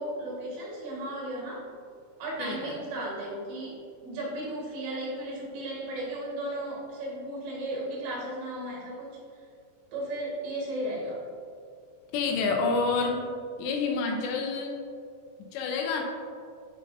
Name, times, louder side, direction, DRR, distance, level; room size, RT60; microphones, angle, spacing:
voice 1, 0.0-1.6 2.2-9.2 9.9-11.2, right 1 dB, 75° right, -5 dB, 3.9 m, -35 dB
voice 2, 2.4-2.8 12.1-13.2 13.6-14.8 15.5-16.0, left 4 dB, 80° left, 2 dB, 2.9 m, -28 dB
10.0 x 5.3 x 2.6 m, 2.3 s
omnidirectional pair, 5.1 m